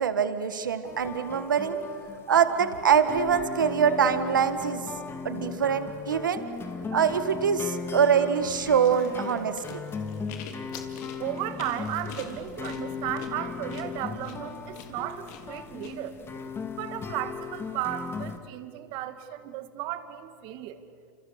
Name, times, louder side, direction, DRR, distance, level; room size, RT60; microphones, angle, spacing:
voice 1, 0.0-1.8 2.3-4.8 5.2-6.4 6.9-9.8, right 7 dB, 85° right, 10 dB, 1.6 m, -24 dB
sound 1, 0.8-18.4, left 5 dB, 25° left, 2.4 m, -37 dB
sound 2, 8.8-15.9, left 9 dB, 60° left, 3.4 m, -46 dB
voice 2, 11.2-16.2 16.8-20.8, right 13 dB, 50° right, 9 dB, 2.2 m, -35 dB
29.0 x 27.0 x 6.9 m, 2.3 s
hypercardioid pair, 100°, 10 cm